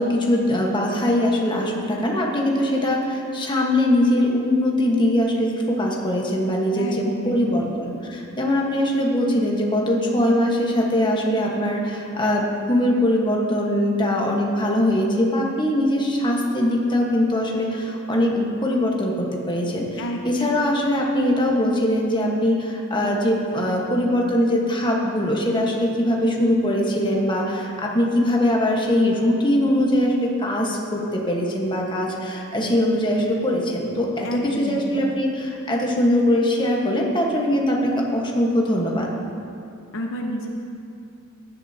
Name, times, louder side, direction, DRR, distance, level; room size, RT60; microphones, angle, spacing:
voice 1, 0.0-39.1, left 1 dB, 20° left, -1 dB, 1.3 m, -22 dB
voice 2, 6.8-7.7 20.0-20.2 34.2-35.1 39.9-40.5, equal, 60° left, 1 dB, 0.9 m, -30 dB
16.5 x 11.0 x 2.8 m, 2.5 s
head